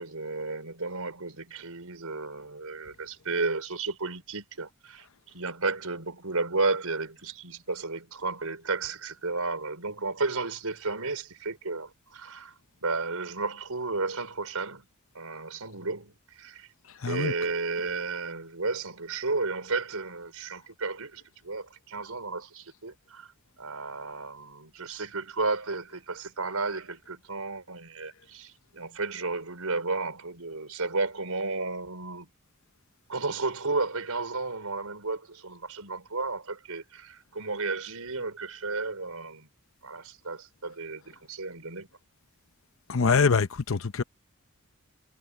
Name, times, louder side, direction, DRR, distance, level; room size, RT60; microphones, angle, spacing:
voice 1, 0.0-12.5 12.8-14.9 15.1-16.7 17.1-23.3 23.6-32.3 33.1-39.5 39.8-41.9, right 3 dB, 85° right, 4.6 m, -33 dB
voice 2, 17.0-17.3 42.9-44.0, left 5 dB, 60° left, 0.7 m, -24 dB
head